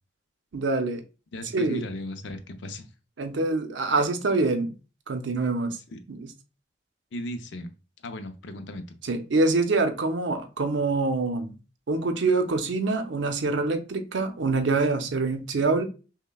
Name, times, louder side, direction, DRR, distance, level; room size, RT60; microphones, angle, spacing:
voice 1, 0.5-1.0 1.5-1.8 3.2-4.7 5.1-5.7 6.1-6.3 9.0-11.6 11.9-15.8, right 3 dB, 80° right, 0.6 m, -25 dB
voice 2, 1.3-2.9 5.6-6.0 7.1-7.7 8.0-8.8, left 1 dB, 75° left, 0.5 m, -36 dB
5.6 x 2.2 x 2.2 m
head